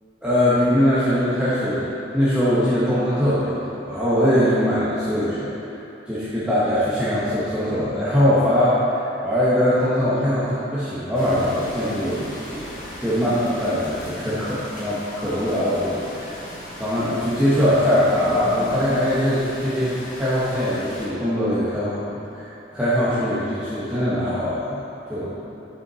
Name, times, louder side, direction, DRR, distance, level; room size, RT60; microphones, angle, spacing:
voice 1, 0.2-16.4 16.8-24.8 25.1-25.5, equal, 5° right, -12 dB, 1.1 m, -22 dB
sound 1, 11.1-21.1, equal, 50° left, 1.6 m, -37 dB
8.4 x 5.8 x 4.0 m, 2.9 s
head